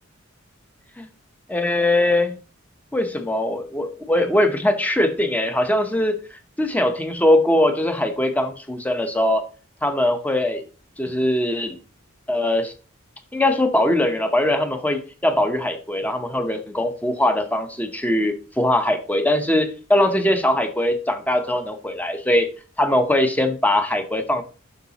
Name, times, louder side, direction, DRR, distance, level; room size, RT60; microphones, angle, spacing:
voice 1, 1.5-2.3 2.9-6.2 6.6-9.4 9.8-10.6 11.0-11.8 12.3-12.7 13.3-22.5 22.8-24.4, left 1 dB, 10° left, 7 dB, 0.7 m, -21 dB
7.9 x 5.9 x 2.9 m, 0.35 s
head